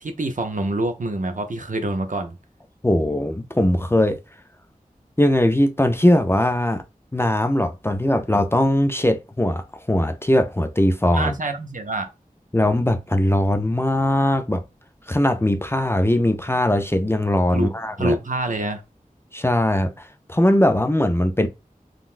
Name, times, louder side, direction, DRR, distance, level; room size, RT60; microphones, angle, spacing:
voice 1, 0.0-2.4 11.1-12.1 17.5-17.7 18.0-18.8, right 2 dB, 60° right, 0.6 m, -26 dB
voice 2, 2.8-4.2 5.2-6.8 7.1-11.3 12.5-14.6 15.1-18.2 19.3-21.5, left 1 dB, 15° left, 0.4 m, -20 dB
3.8 x 2.2 x 2.4 m
wide cardioid pair, 45°, 15 cm